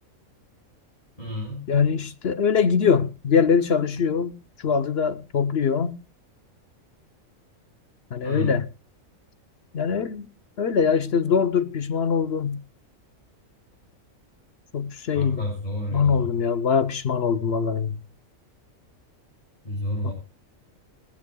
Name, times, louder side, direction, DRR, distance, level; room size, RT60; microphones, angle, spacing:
voice 1, 1.2-1.6 8.2-8.6 15.1-16.3 19.6-20.1, left 1 dB, 30° left, 6.9 m, -31 dB
voice 2, 1.7-4.4 4.6-5.9 8.1-8.7 9.7-10.3 10.6-12.6 14.7-15.4 15.9-18.0 20.0-20.1, left 6 dB, 55° left, 1.0 m, -22 dB
21.5 x 14.5 x 2.2 m
omnidirectional pair, 1.4 m